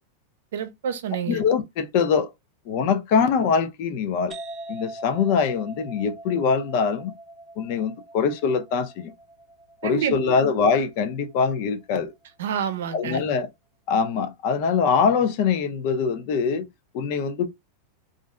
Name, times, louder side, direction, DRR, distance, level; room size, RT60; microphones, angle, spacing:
voice 1, 0.5-1.4 9.8-10.2 12.4-13.2, right 7 dB, 75° right, 0.6 m, -28 dB
voice 2, 1.3-2.3 2.7-4.3 4.7-7.1 7.6-9.1 9.8-12.1 12.9-13.5 13.9-16.7 16.9-17.5, left 6 dB, 40° left, 0.5 m, -23 dB
sound 1, 4.3-11.7, right 2 dB, 15° right, 0.5 m, -42 dB
2.5 x 2.1 x 3.6 m
supercardioid pair, 175°, 0 cm